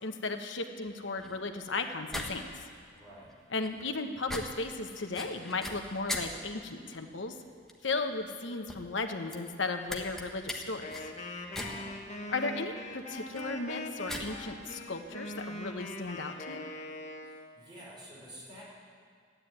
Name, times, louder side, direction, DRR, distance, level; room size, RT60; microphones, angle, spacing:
voice 1, 0.0-2.5 3.5-7.4 7.8-10.9 12.3-16.7, left 3 dB, 85° left, 5 dB, 1.2 m, -35 dB
sound 1, 0.8-16.1, left 1 dB, ahead, 1.4 m, -43 dB
voice 2, 2.9-3.3 11.5-11.9 17.2-18.6, equal, 25° right, -6 dB, 4.8 m, -49 dB
Wind instrument woodwind instrument, 10.8-17.5, left 1 dB, 40° left, 1.5 m, -42 dB
13.5 x 9.6 x 9.6 m, 2.1 s
head